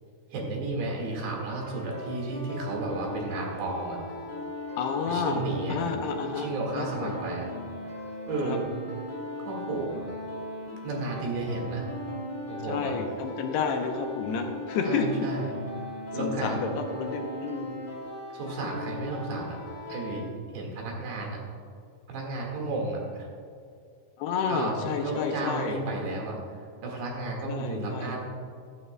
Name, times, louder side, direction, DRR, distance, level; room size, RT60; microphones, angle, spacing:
voice 1, 0.3-4.0 5.1-5.8 6.4-7.5 8.3-8.7 9.4-10.1 10.8-11.9 12.5-12.9 14.9-15.5 16.1-16.6 18.3-19.6 19.9-20.2 20.5-21.4 22.1-23.3 24.5-28.2, right 2 dB, 70° right, -1 dB, 3.8 m, -33 dB
sound 1, 1.6-20.2, left 1 dB, 10° left, 1.1 m, -38 dB
voice 2, 4.8-5.4 5.7-6.5 6.8-7.1 8.4-8.6 12.7-15.1 16.2-17.7 24.2-25.8 27.5-28.2, left 5 dB, 75° left, 3 dB, 2.7 m, -30 dB
15.0 x 12.0 x 2.2 m, 2.3 s
omnidirectional pair, 5.1 m